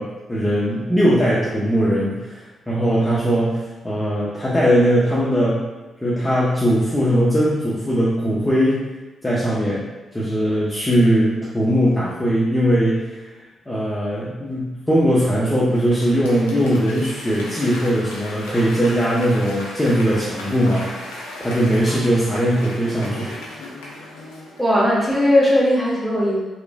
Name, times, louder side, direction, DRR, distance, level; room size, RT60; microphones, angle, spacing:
voice 1, 0.0-5.7 6.0-8.8 9.2-9.9 10.1-13.2 13.7-23.4, equal, 15° left, -8 dB, 0.7 m, -20 dB
Applause / Crowd, 15.7-25.2 25.5-25.6, left 1 dB, 85° left, 0.5 m, -36 dB
voice 2, 24.6-26.4, left 1 dB, 5° right, -5 dB, 1.1 m, -17 dB
3.0 x 2.4 x 2.2 m, 1.2 s
hypercardioid pair, 40°, 0 cm